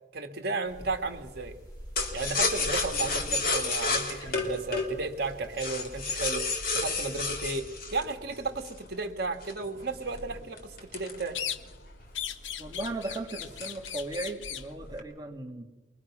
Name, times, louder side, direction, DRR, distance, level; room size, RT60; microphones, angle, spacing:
voice 1, 0.1-1.6 2.1-6.5 6.7-7.7 7.9-11.4, right 3 dB, 55° right, 5 dB, 2.3 m, -34 dB
sound 1, 0.6-7.5, equal, 20° left, 7.2 m, -45 dB
sound 2, 2.0-8.9 9.4-11.9 12.2-12.3 12.6-13.0 13.4-14.1 14.4-15.0, left 3 dB, 50° left, 3.3 m, -31 dB
sound 3, 11.3-11.9 12.1-14.7, left 9 dB, 80° left, 1.1 m, -37 dB
voice 2, 12.6-15.6, right 2 dB, 20° right, 1 dB, 2.3 m, -36 dB
23.5 x 22.0 x 6.2 m, 1.2 s
head